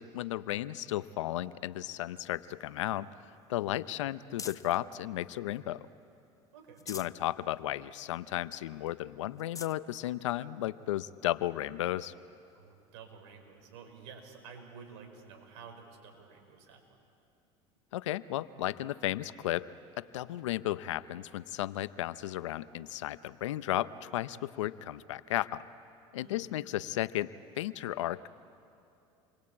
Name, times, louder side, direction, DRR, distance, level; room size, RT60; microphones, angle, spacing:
voice 1, 0.0-3.1 3.5-5.9 6.9-12.1 17.9-19.7 20.0-25.7 26.1-27.3 27.6-28.3, left 14 dB, 85° left, 15 dB, 0.8 m, -34 dB
sound 1, 2.2-4.9 5.4-6.2 6.6-7.2 7.7-7.8 8.1-8.2 8.9-9.0 9.3-9.8 10.6-10.7 12.5-12.6, left 5 dB, 20° left, 0.7 m, -48 dB
voice 2, 6.5-6.9 12.5-17.0 26.1-26.5, right 6 dB, 75° right, 4 dB, 5.5 m, -51 dB
28.5 x 23.0 x 8.7 m, 2.7 s
hypercardioid pair, 85°, 15 cm